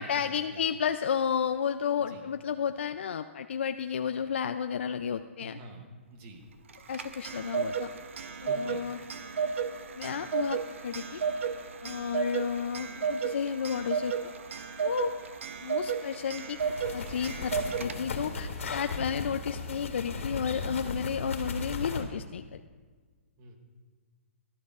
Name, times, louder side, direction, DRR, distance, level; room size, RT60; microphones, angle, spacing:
voice 1, 0.0-5.6 6.9-7.9 8.4-9.0 9.9-11.2 11.8-14.1 14.8-15.1 15.6-16.6 16.9-22.6, left 7 dB, 60° left, 8 dB, 0.3 m, -32 dB
voice 2, 2.0-2.3 5.4-6.4 8.5-8.9 23.4-23.6, right 2 dB, 20° right, 5 dB, 0.8 m, -47 dB
Clock, 6.7-18.3, right 6 dB, 65° right, 0.7 m, -33 dB
sound 1, 16.6-22.0, left 3 dB, 90° left, 1.8 m, -36 dB
15.5 x 12.5 x 2.4 m, 1.5 s
hypercardioid pair, 180°, 7 cm